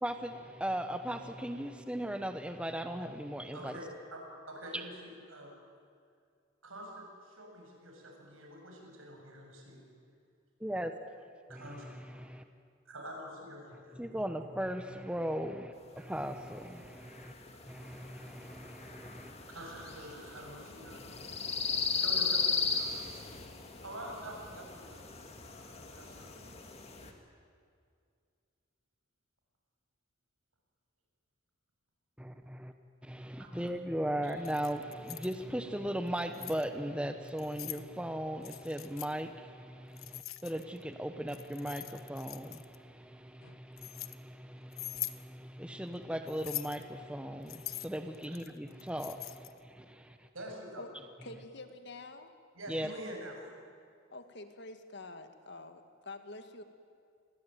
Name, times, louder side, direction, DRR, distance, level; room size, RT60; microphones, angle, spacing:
voice 1, 0.0-3.8 10.6-10.9 11.5-12.4 13.9-17.3 17.7-19.3 32.2-32.7 33.0-50.3 52.7-52.9, equal, 5° right, 7 dB, 1.0 m, -38 dB
voice 2, 3.5-5.5 6.6-9.8 11.5-11.8 12.9-14.0 16.0-16.1 19.5-21.5 21.9-23.2 23.8-25.3 25.9-26.4 33.4-33.5 34.2-34.3 50.3-50.9 52.6-53.5, equal, 85° right, 1 dB, 7.4 m, -46 dB
sound 1, 16.3-27.1, left 5 dB, 30° left, 2.4 m, -37 dB
Keys jangling, 34.3-35.4 36.1-36.6 37.3-37.8 38.4-39.1 40.0-40.8 41.3-42.8 43.4-44.1 44.7-45.2 46.3-46.8 47.5-49.6, left 15 dB, 90° left, 1.1 m, -43 dB
voice 3, 51.2-52.3 54.1-56.6, left 2 dB, 55° left, 8 dB, 2.0 m, -47 dB
28.0 x 21.5 x 9.3 m, 2.2 s
head